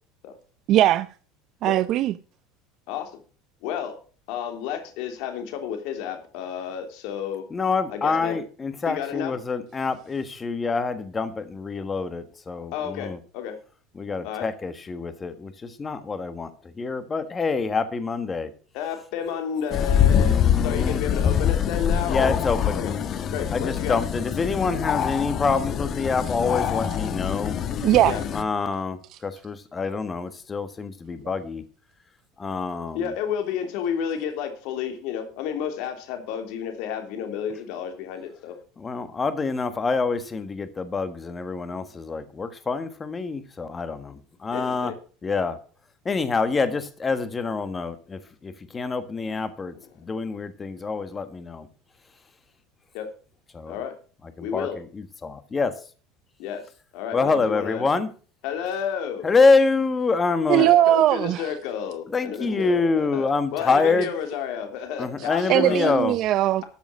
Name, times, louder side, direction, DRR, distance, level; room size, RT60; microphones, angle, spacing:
voice 1, 0.7-1.1 1.6-2.1 27.8-28.2 60.5-61.5 62.5-62.6 65.2-66.6, right 13 dB, 50° right, 0.5 m, -20 dB
voice 2, 2.9-3.2 3.6-3.9 4.3-7.4 7.9-8.4 8.9-9.3 12.7-13.5 14.2-14.5 18.7-20.4 20.6-22.3 22.7-22.9 23.3-24.0 28.0-28.2 32.9-38.6 44.5-45.0 52.9-53.1 53.7-53.9 54.4-54.8 56.4-56.6 56.9-57.8 58.4-59.3 60.5-66.0, left 8 dB, 65° left, 3.2 m, -31 dB
voice 3, 7.5-13.2 13.9-18.5 20.1-21.0 22.1-22.8 23.5-27.5 28.3-31.6 32.4-33.1 38.8-44.9 45.2-45.6 46.0-51.7 53.5-53.8 54.4-55.7 57.1-58.1 59.2-60.7 62.1-64.1 65.0-66.1, left 4 dB, 20° left, 1.5 m, -26 dB
sound 1, 19.7-28.4, left 8 dB, 35° left, 1.2 m, -24 dB
13.0 x 7.1 x 6.2 m
supercardioid pair, 130°, 0 cm